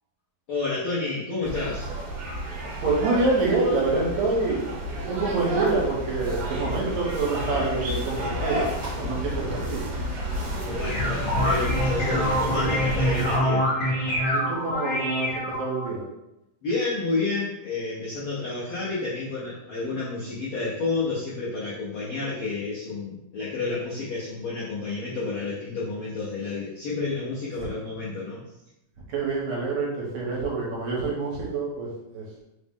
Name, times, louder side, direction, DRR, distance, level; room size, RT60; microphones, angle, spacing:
voice 1, 0.5-1.9 10.4-13.7 16.6-28.4, left 3 dB, 80° left, -8 dB, 1.2 m, -30 dB
sound 1, 1.4-13.4, equal, 60° right, 1.9 m, -30 dB
voice 2, 2.8-4.6 5.1-8.7 9.0-9.9 12.5-12.6 14.3-16.0 29.1-32.3, right 3 dB, 75° right, -3 dB, 2.1 m, -26 dB
sound 2, 10.6-15.9, equal, 45° left, 1.2 m, -25 dB
4.8 x 2.0 x 3.6 m, 0.90 s
omnidirectional pair, 3.4 m